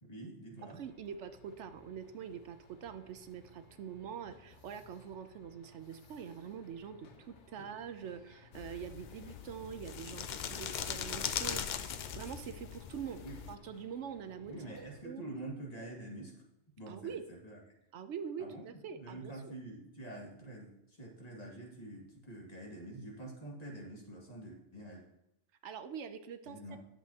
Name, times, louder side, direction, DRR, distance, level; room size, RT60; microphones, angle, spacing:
voice 1, 0.0-0.8 7.6-7.7 13.2-13.4 14.5-16.3 16.8-17.6 18.4-18.6 18.9-25.0 26.4-26.8, right 2 dB, 35° left, -3 dB, 2.1 m, -46 dB
sound 1, 0.8-15.0, left 3 dB, 80° left, 1.3 m, -59 dB
voice 2, 0.8-13.2 13.5-15.3 16.9-17.2 17.9-19.5 25.6-26.8, right 7 dB, 75° right, 10 dB, 0.9 m, -45 dB
sound 2, 8.5-13.6, left 8 dB, 55° left, 0.5 m, -40 dB
10.5 x 7.7 x 2.8 m, 0.84 s
omnidirectional pair, 1.2 m